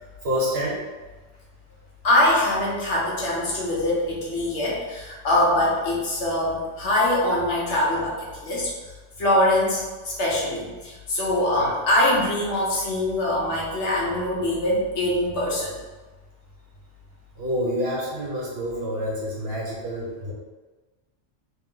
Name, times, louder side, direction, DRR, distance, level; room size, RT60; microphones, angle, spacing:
voice 1, 0.2-0.8 17.4-20.3, equal, 50° right, -5 dB, 1.3 m, -27 dB
voice 2, 2.0-8.7 9.2-15.8, left 1 dB, 65° left, -5 dB, 1.3 m, -23 dB
3.2 x 3.2 x 3.8 m, 1.2 s
omnidirectional pair, 1.3 m